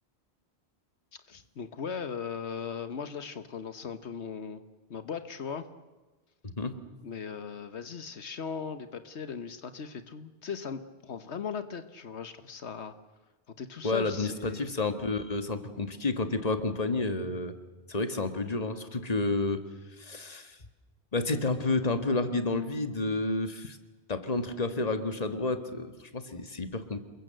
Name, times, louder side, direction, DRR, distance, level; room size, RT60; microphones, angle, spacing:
voice 1, 1.3-4.6 4.9-5.6 7.0-12.9 13.6-14.6, left 6 dB, 85° left, 10 dB, 1.5 m, -38 dB
voice 2, 13.8-17.5 17.9-19.6 20.0-20.6 21.1-23.8 24.1-27.0, left 3 dB, 35° left, 8 dB, 1.9 m, -30 dB
28.5 x 22.5 x 7.8 m, 1.2 s
omnidirectional pair, 1.1 m